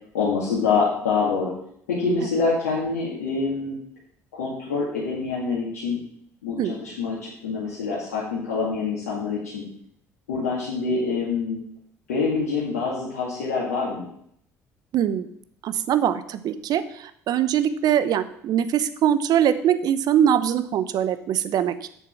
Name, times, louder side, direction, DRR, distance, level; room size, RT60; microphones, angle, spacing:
voice 1, 0.1-1.5 1.9-3.8 4.3-6.0 6.4-9.6 10.3-11.6 12.1-14.1, left 4 dB, 80° left, -7 dB, 2.4 m, -26 dB
voice 2, 14.9-15.3 15.6-21.7, right 9 dB, 55° right, 13 dB, 0.8 m, -22 dB
8.5 x 7.0 x 5.9 m, 0.68 s
hypercardioid pair, 55°, 8 cm